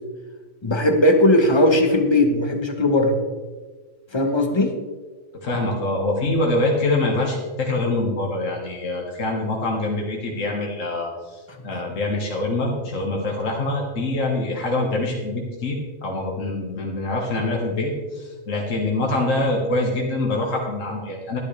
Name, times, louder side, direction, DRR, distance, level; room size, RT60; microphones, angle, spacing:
voice 1, 0.6-3.2 4.1-4.7, left 1 dB, 20° left, 4 dB, 1.1 m, -18 dB
voice 2, 5.4-21.4, left 2 dB, 75° left, -1 dB, 1.9 m, -25 dB
11.5 x 11.5 x 3.3 m, 1.3 s
omnidirectional pair, 1.4 m